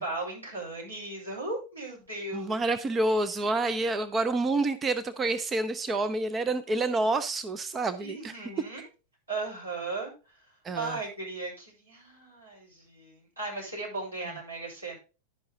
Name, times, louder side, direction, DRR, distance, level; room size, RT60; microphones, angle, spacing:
voice 1, 0.0-2.6 8.0-8.8 9.3-10.1 10.7-15.0, right 3 dB, 85° right, 5.6 m, -36 dB
voice 2, 2.3-8.3 10.6-11.0, right 2 dB, 20° right, 0.6 m, -28 dB
11.0 x 5.6 x 3.9 m
figure-of-eight pair, 90°, 0 cm